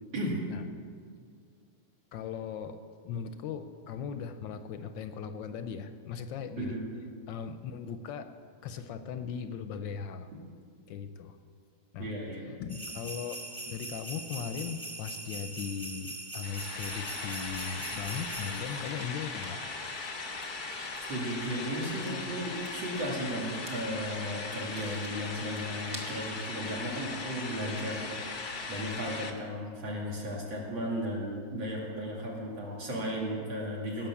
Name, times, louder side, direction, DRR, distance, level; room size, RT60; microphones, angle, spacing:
voice 1, 2.1-2.8 3.0-6.8 7.3-8.3 8.6-10.3 10.9-11.4 11.9-12.1 12.5-19.6, left 7 dB, 75° left, 10 dB, 1.2 m, -38 dB
voice 2, 12.0-12.6 21.1-34.1, equal, 70° right, -3 dB, 3.2 m, -35 dB
sound 1, 12.7-18.9, right 2 dB, 15° right, 1.5 m, -41 dB
sound 2, 16.4-29.3, left 3 dB, 35° left, 0.9 m, -39 dB
sound 3, 18.6-26.5, right 2 dB, 40° right, 1.7 m, -52 dB
18.0 x 6.0 x 7.0 m, 2.2 s
omnidirectional pair, 2.2 m